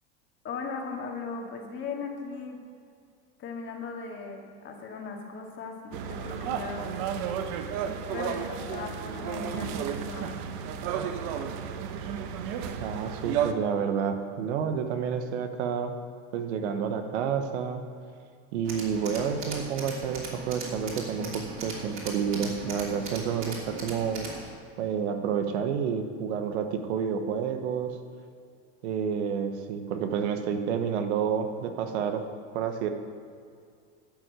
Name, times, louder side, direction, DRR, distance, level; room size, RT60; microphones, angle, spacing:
voice 1, 0.4-2.6 3.4-6.9 8.1-10.5, left 4 dB, 35° left, 1 dB, 2.0 m, -38 dB
sound 1, 5.9-13.5, right 8 dB, 60° right, 1.1 m, -32 dB
voice 2, 12.8-15.9 16.3-17.8 18.5-24.3 24.8-27.9 28.8-32.2 32.5-32.9, right 7 dB, 80° right, 7 dB, 1.3 m, -29 dB
Tools, 18.6-24.5, right 3 dB, 35° right, 3.0 m, -39 dB
12.0 x 6.5 x 8.4 m, 2.3 s
supercardioid pair, 120°, 33 cm